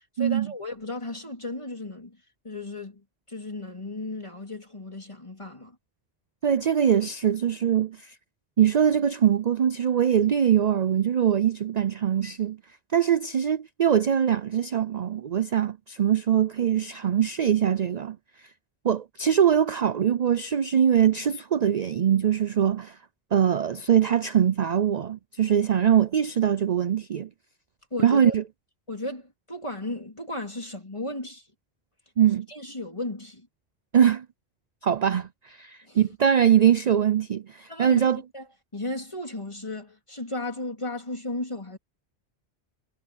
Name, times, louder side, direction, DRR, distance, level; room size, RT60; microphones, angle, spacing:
voice 1, 0.0-2.2 2.4-5.8 27.9-28.4 28.9-31.5 32.5-33.5 35.8-36.1 37.7-38.5 38.7-41.8, left 2 dB, 25° left, 3.6 m, -35 dB
voice 2, 6.4-8.1 8.6-12.6 12.9-18.2 18.8-23.0 23.3-27.3 28.0-28.4 32.2-32.5 33.9-34.2 34.8-38.2, right 9 dB, 50° right, 0.6 m, -22 dB
omnidirectional pair, 1.1 m